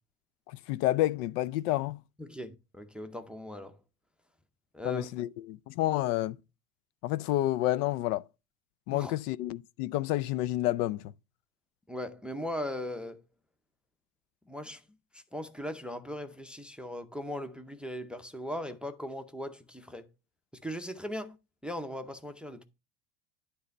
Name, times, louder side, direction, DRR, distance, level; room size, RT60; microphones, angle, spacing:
voice 1, 0.5-2.0 4.8-6.4 7.0-8.2 8.9-11.0, left 15 dB, 70° left, 0.5 m, -29 dB
voice 2, 2.2-3.8 4.7-5.2 8.9-9.1 11.9-13.2 14.5-14.8 15.1-20.1 20.5-21.4 21.6-22.6, left 1 dB, ahead, 0.5 m, -39 dB
9.6 x 3.4 x 5.2 m
hypercardioid pair, 95°, 49 cm